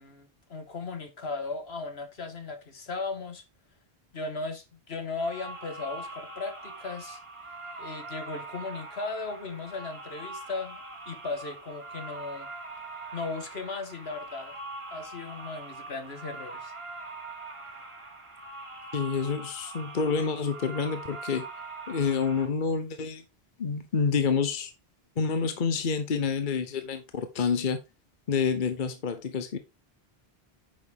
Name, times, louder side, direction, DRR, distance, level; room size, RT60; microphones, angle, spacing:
voice 1, 0.0-3.4 4.1-7.2 7.8-12.5 13.1-14.6 14.9-16.7 17.7-17.9, left 3 dB, 75° left, 1.9 m, -37 dB
sound 1, 5.1-22.5, right 2 dB, 30° right, 1.6 m, -42 dB
voice 2, 18.9-21.4 21.9-23.2 23.6-24.7 25.2-27.8 28.3-29.6, left 5 dB, 55° left, 1.0 m, -28 dB
9.8 x 6.2 x 3.5 m
omnidirectional pair, 1.1 m